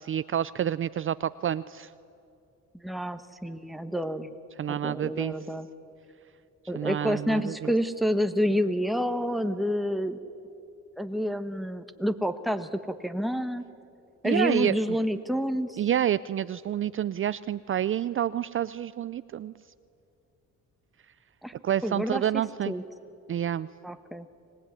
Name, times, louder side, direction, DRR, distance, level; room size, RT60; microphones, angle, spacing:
voice 1, 0.0-1.9 4.6-5.3 6.7-7.7 14.2-14.8 15.8-19.5 21.6-22.7 23.3-23.7, right 10 dB, 45° right, 16 dB, 0.5 m, -28 dB
voice 2, 2.8-4.3 4.7-5.7 6.7-10.2 11.0-13.6 14.2-15.8 21.4-21.5 21.8-22.2 22.7-22.8 23.8-24.2, equal, ahead, 8 dB, 1.5 m, -28 dB
25.0 x 19.0 x 9.7 m, 2.6 s
cardioid pair, 90°, 30 cm